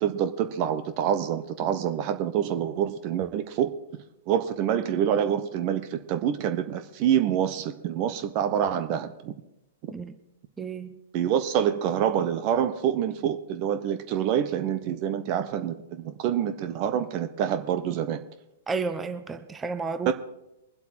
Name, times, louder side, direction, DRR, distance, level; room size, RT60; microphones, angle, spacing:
voice 1, 0.0-3.7 4.3-9.3 11.1-18.2 20.1-20.2, right 9 dB, 40° right, 9 dB, 1.0 m, -26 dB
voice 2, 10.6-10.9 18.7-20.1, right 4 dB, 15° right, 8 dB, 1.0 m, -31 dB
24.0 x 8.1 x 4.4 m, 0.88 s
figure-of-eight pair, 110°, 0 cm